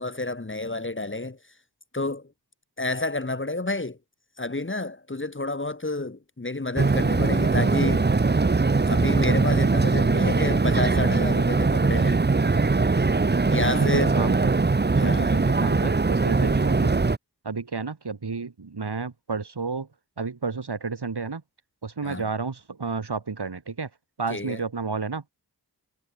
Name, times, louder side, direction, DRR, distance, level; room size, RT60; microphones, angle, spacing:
voice 1, 0.0-1.4 1.9-2.3 2.8-4.0 4.4-8.1 8.9-12.2 13.4-14.2 15.0-15.3 22.0-22.2 24.3-24.6, left 2 dB, 30° left, 1.7 m, -30 dB
sound 1, 6.8-17.2, right 3 dB, 25° right, 0.8 m, -21 dB
voice 2, 13.7-14.6 14.9-17.0 17.4-19.9 20.2-21.4 21.8-23.9 24.2-25.3, right 4 dB, 75° right, 4.8 m, -31 dB
cardioid pair, 45°, 40 cm